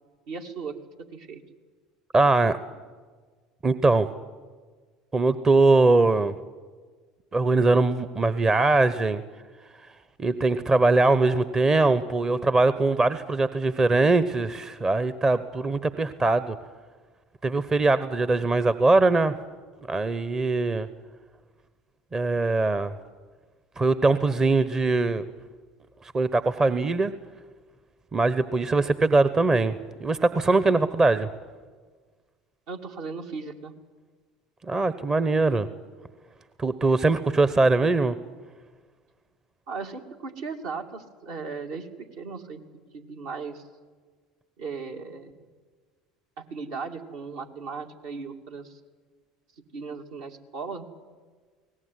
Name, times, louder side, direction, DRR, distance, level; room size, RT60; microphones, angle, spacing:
voice 1, 0.3-0.8 1.1-1.4 32.7-33.7 39.7-42.6 42.9-43.6 44.6-45.3 46.5-48.8 49.7-50.9, right 5 dB, 65° right, 3 dB, 2.5 m, -37 dB
voice 2, 2.1-2.6 3.6-4.1 5.1-6.3 7.3-9.2 10.2-16.6 17.4-19.3 19.9-20.9 22.1-22.9 23.8-25.2 26.0-27.1 28.1-31.3 34.7-35.7 36.6-38.1, right 3 dB, 25° right, 14 dB, 1.0 m, -22 dB
22.5 x 18.5 x 9.7 m, 1.5 s
figure-of-eight pair, 70°, 2 cm